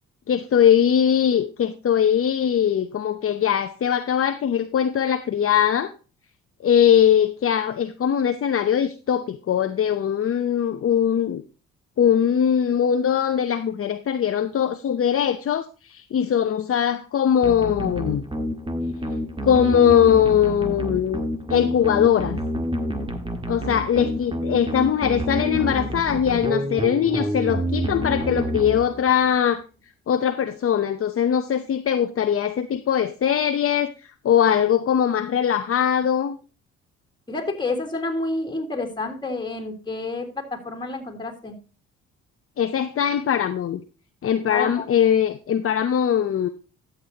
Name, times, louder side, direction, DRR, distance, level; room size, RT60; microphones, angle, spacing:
voice 1, 0.3-5.9 6.6-11.4 12.0-18.2 19.4-21.2 21.5-22.4 23.5-29.6 30.1-36.4 42.6-43.8 44.2-46.5, left 9 dB, 50° left, 8 dB, 0.8 m, -21 dB
sound 1, 17.4-29.3, equal, 15° right, 1.7 m, -28 dB
voice 2, 37.3-41.6 44.5-44.9, left 2 dB, 15° left, 3 dB, 3.4 m, -29 dB
12.5 x 8.2 x 2.9 m, 0.32 s
cardioid pair, 90°, 30 cm